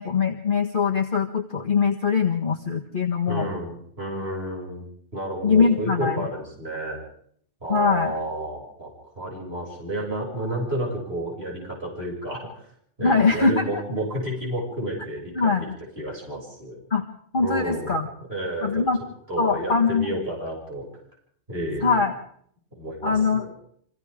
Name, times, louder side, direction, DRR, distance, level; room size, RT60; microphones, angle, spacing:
voice 1, 0.0-3.5 5.4-6.3 7.7-8.1 13.0-13.7 15.4-15.8 16.9-17.1 17.3-18.1 18.6-19.0 19.4-20.1 21.8-22.1 23.0-23.4, left 5 dB, 45° left, 2 dB, 1.8 m, -22 dB
voice 2, 3.3-4.9 5.1-7.0 7.6-8.9 9.2-12.7 13.0-15.7 16.0-16.8 17.4-18.0 18.3-18.9 19.3-20.9 21.5-22.0 22.8-23.5, right 1 dB, 55° right, -2 dB, 7.3 m, -31 dB
30.0 x 25.0 x 3.7 m, 0.64 s
omnidirectional pair, 1.3 m